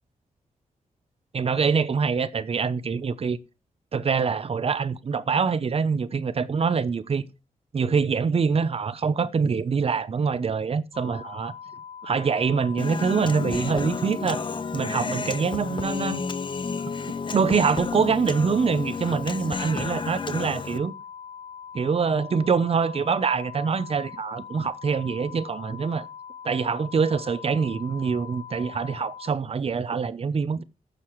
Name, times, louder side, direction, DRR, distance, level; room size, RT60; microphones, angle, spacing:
voice 1, 1.3-3.4 3.9-7.3 7.7-11.5 12.0-14.4 14.7-16.2 17.3-20.9 21.7-26.1 26.4-30.6, right 5 dB, 45° right, 0.8 m, -25 dB
sound 1, 10.9-29.3, left 7 dB, 20° left, 1.2 m, -42 dB
Human voice, 12.8-20.8, left 5 dB, 35° left, 0.8 m, -31 dB
16.0 x 6.8 x 3.1 m
wide cardioid pair, 130°, 14 cm